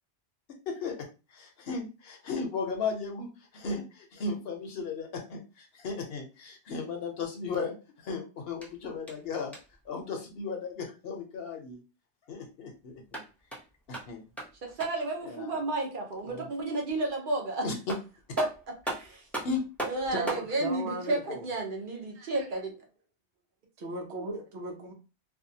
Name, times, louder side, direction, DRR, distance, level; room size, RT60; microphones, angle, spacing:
voice 1, 0.7-9.5 9.8-11.8 12.3-13.2 13.9-14.2 15.3-15.6 16.2-16.5 17.6-17.7 19.4-19.6, left 4 dB, 65° left, 0.8 m, -36 dB
sound 1, 8.6-9.9 12.9-15.1 17.4-17.5 17.9-20.5, right 1 dB, ahead, 0.6 m, -39 dB
voice 2, 14.6-17.7 18.4-18.5 18.8-19.3 19.8-22.7, right 2 dB, 55° right, 0.8 m, -32 dB
voice 3, 20.1-21.4 22.1-22.5 23.8-24.9, right 2 dB, 85° right, 1.0 m, -37 dB
2.6 x 2.2 x 2.7 m
omnidirectional pair, 1.1 m